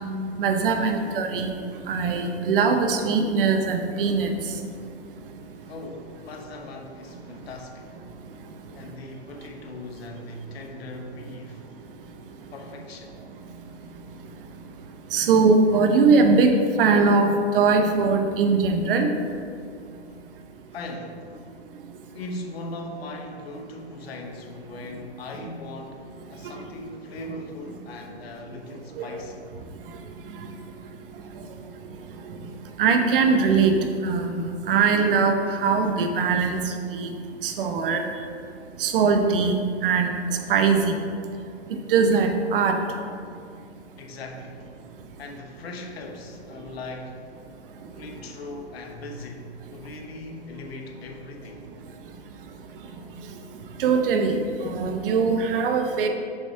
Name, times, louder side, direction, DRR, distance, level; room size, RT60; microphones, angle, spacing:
voice 1, 0.4-1.5 1.9-4.3 15.1-16.5 16.8-19.1 29.0-29.1 32.8-33.7 34.0-34.2 34.7-35.4 35.6-36.6 36.9-37.1 37.4-38.0 38.8-39.6 39.8-40.2 40.5-40.9 41.9-42.8 53.8-54.4 54.6-56.1, right 5 dB, 50° right, 5 dB, 0.8 m, -21 dB
voice 2, 5.7-8.0 8.7-11.6 12.5-13.2 20.1-20.2 20.7-21.3 22.1-29.4 44.0-44.7 45.2-47.3 47.9-51.7, left 2 dB, 60° left, 3 dB, 1.0 m, -39 dB
6.9 x 4.1 x 4.5 m, 2.3 s
hypercardioid pair, 135°, 34 cm